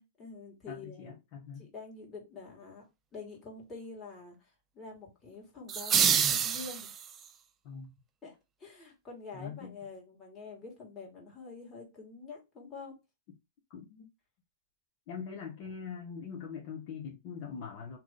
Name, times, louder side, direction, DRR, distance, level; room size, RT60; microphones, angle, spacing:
voice 1, 0.0-1.2 1.6-2.9 3.1-6.9 8.2-8.3 8.6-13.0 15.7-15.8, left 4 dB, 20° left, 1.7 m, -47 dB
voice 2, 0.7-1.7 7.6-7.9 9.3-9.8 13.7-14.1 15.1-18.0, left 6 dB, 50° left, 1.0 m, -42 dB
sound 1, 5.7-7.3, right 8 dB, 25° right, 0.3 m, -27 dB
2.9 x 2.5 x 3.7 m
hypercardioid pair, 135°, 0 cm